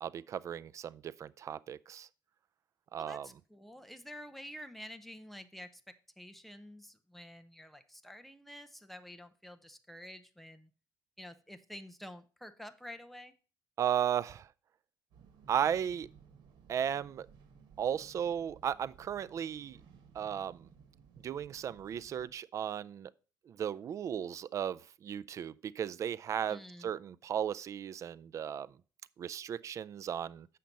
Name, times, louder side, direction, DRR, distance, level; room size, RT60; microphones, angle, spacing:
voice 1, 0.0-2.1 2.9-3.3 13.8-14.5 15.5-16.1 16.7-17.3 17.8-19.8 20.1-20.7 21.2-23.1 23.5-28.7 29.2-30.5, right 9 dB, 40° right, 0.4 m, -35 dB
voice 2, 3.0-5.8 6.2-10.7 11.2-13.3 26.5-26.9, equal, ahead, 0.7 m, -49 dB
sound 1, 15.1-22.3, right 6 dB, 70° right, 1.6 m, -59 dB
7.4 x 5.7 x 5.2 m
cardioid pair, 135°, 8 cm